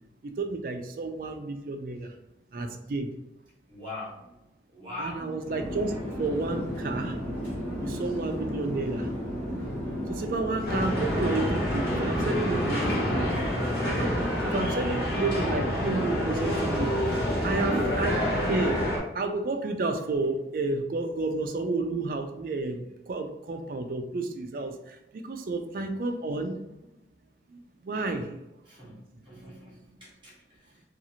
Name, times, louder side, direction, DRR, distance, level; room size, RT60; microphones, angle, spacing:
voice 1, 0.2-2.1 2.5-3.1 5.0-7.5 7.8-9.1 9.5-9.7 10.1-13.3 13.8-17.0 17.4-18.8 19.1-26.6 27.5-28.4, right 3 dB, 50° right, 6 dB, 0.3 m, -31 dB
voice 2, 3.7-4.3 4.7-5.3 14.6-14.9 28.6-29.0 29.2-30.8, left 1 dB, 25° right, -5 dB, 1.1 m, -42 dB
Conversation / Chatter / Fixed-wing aircraft airplane, 5.4-13.4, equal, 10° left, 1.1 m, -34 dB
sound 1, 10.7-19.0, equal, 60° left, 0.7 m, -28 dB
2.7 x 2.4 x 2.8 m, 0.89 s
head